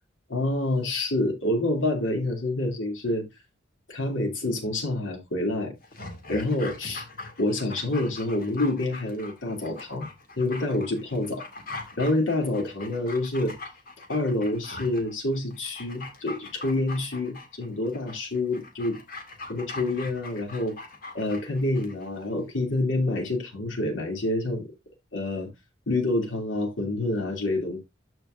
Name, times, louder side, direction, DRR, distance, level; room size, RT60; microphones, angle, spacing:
voice 1, 0.3-3.2 3.9-5.7 6.3-7.0 7.4-10.1 10.4-11.4 12.0-13.5 14.1-19.0 19.5-20.8 21.1-24.6 25.1-25.5 25.9-27.8, left 2 dB, 85° left, 2.7 m, -27 dB
Dog, 5.8-22.1 22.4-22.5, left 3 dB, 50° left, 2.0 m, -42 dB
13.5 x 4.6 x 2.6 m
head